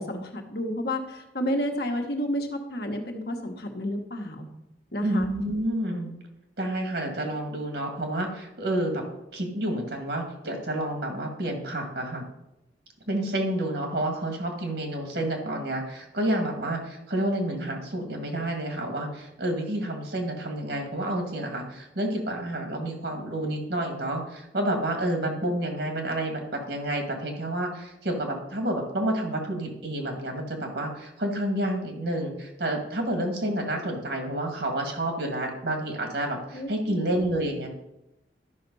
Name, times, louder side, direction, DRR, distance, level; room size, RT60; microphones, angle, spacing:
voice 1, 0.0-4.5 4.9-5.3 36.5-37.1, equal, 55° left, 3 dB, 1.4 m, -31 dB
voice 2, 5.0-6.1 6.6-9.0 9.3-12.2 13.1-37.7, right 1 dB, 65° right, 3 dB, 2.2 m, -29 dB
12.0 x 5.9 x 5.5 m, 0.88 s
head